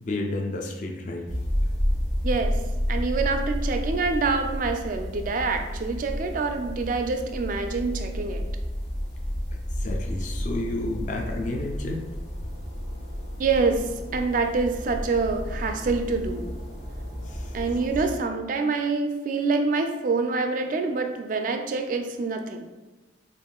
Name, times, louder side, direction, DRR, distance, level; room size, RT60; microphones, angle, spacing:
voice 1, 0.1-1.3 9.8-12.0 17.3-17.5, left 2 dB, 40° left, 1 dB, 0.4 m, -31 dB
sound 1, 1.3-18.2, equal, 65° left, 1.3 m, -31 dB
voice 2, 2.2-2.6 2.9-8.4 13.4-16.5 17.5-22.6, right 4 dB, 40° right, 5 dB, 0.3 m, -26 dB
5.4 x 2.5 x 2.2 m, 1.1 s
head